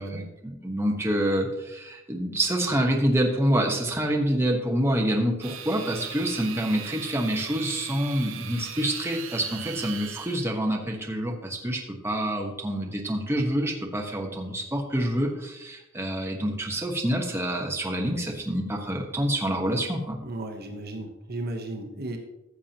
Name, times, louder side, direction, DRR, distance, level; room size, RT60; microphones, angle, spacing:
voice 1, 0.0-20.2, right 1 dB, 15° right, 0 dB, 1.2 m, -27 dB
sound 1, 5.4-10.5, right 8 dB, 85° right, 0.9 m, -39 dB
voice 2, 20.2-22.2, right 1 dB, 55° right, 3 dB, 1.1 m, -35 dB
14.0 x 7.2 x 2.9 m, 0.95 s
head